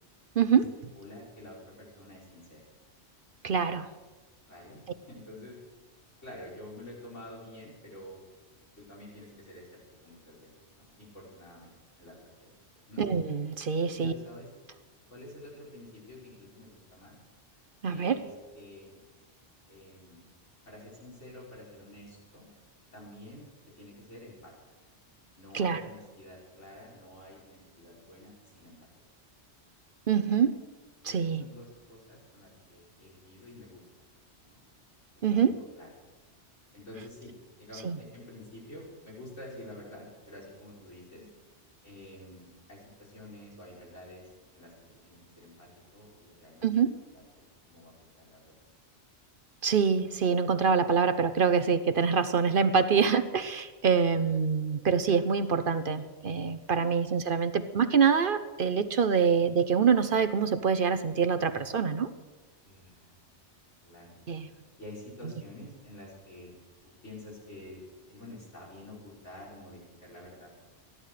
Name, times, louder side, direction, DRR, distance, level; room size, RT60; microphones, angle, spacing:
voice 1, 0.4-0.7 3.4-3.9 13.0-14.1 17.8-18.2 25.5-25.8 30.1-30.6 31.0-31.4 35.2-35.5 37.8-38.0 46.6-46.9 49.6-62.1 64.3-64.5, right 6 dB, 50° right, 10 dB, 0.9 m, -25 dB
voice 2, 0.9-2.6 4.5-4.8 5.1-5.6 6.2-8.2 8.8-11.7 12.0-12.5 12.9-13.1 13.9-14.5 15.1-17.2 17.9-18.3 18.5-19.0 19.7-20.2 20.7-22.5 22.9-23.5 23.8-24.5 25.4-28.9 31.0-33.9 34.4-34.6 35.3-35.9 36.7-37.3 37.6-41.3 41.8-44.7 45.0-48.4 54.1-54.3 57.0-57.1 59.4-59.5 62.6-63.3 63.8-64.4 64.8-66.5 66.8-67.8 68.1-70.5, left 1 dB, 90° left, -5 dB, 6.4 m, -49 dB
15.5 x 11.5 x 6.6 m, 1.2 s
omnidirectional pair, 1.2 m